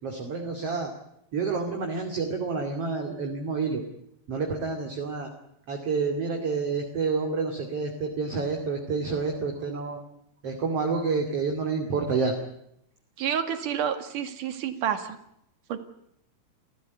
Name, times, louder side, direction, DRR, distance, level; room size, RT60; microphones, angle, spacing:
voice 1, 0.0-0.9 1.3-3.8 4.3-5.3 5.7-10.0 10.4-12.4, right 4 dB, 40° right, 3 dB, 3.2 m, -28 dB
voice 2, 13.2-15.2 15.7-15.8, right 8 dB, 55° right, 8 dB, 3.4 m, -29 dB
28.5 x 15.5 x 9.6 m, 0.78 s
omnidirectional pair, 4.6 m